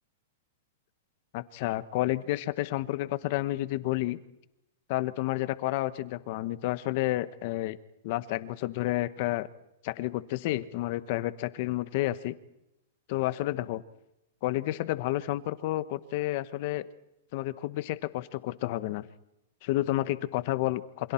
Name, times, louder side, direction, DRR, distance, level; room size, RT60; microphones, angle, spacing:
voice 1, 1.3-4.2 4.9-7.8 8.0-9.5 9.8-12.3 13.1-13.8 14.4-16.9 17.3-19.1 19.6-21.1, left 16 dB, 40° left, 14 dB, 1.0 m, -30 dB
28.5 x 26.5 x 4.4 m, 0.89 s
supercardioid pair, 165°, 0 cm